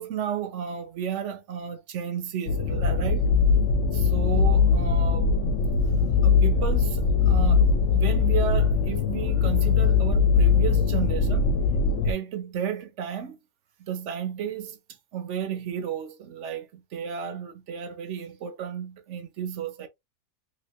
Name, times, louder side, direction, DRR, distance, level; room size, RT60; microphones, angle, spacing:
voice 1, 0.0-3.3 3.9-5.4 6.2-11.5 12.0-13.4 13.8-14.8 15.1-19.9, right 8 dB, 60° right, 0.8 m, -33 dB
sound 1, 2.5-12.1, left 5 dB, 60° left, 1.0 m, -21 dB
3.3 x 2.9 x 2.7 m
omnidirectional pair, 1.7 m